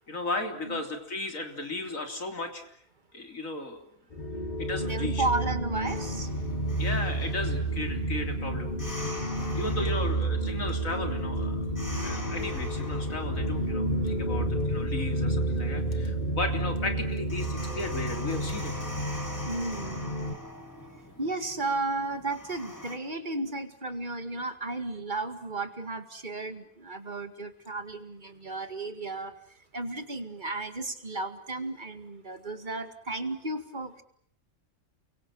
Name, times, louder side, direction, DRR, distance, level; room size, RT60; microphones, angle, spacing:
voice 1, 0.1-2.6 3.1-3.9 4.6-5.3 6.8-8.9 9.5-11.6 12.0-18.7, left 2 dB, 70° left, 5 dB, 3.8 m, -35 dB
sound 1, 4.1-20.3, right 1 dB, 35° left, 1.9 m, -30 dB
voice 2, 4.8-6.3 9.4-10.1 17.7-17.8 19.5-20.0 21.2-34.0, right 2 dB, 35° right, 9 dB, 2.2 m, -34 dB
sound 2, 5.9-23.0, left 1 dB, 10° left, 3.2 m, -44 dB
29.5 x 23.5 x 7.6 m, 0.64 s
omnidirectional pair, 1.5 m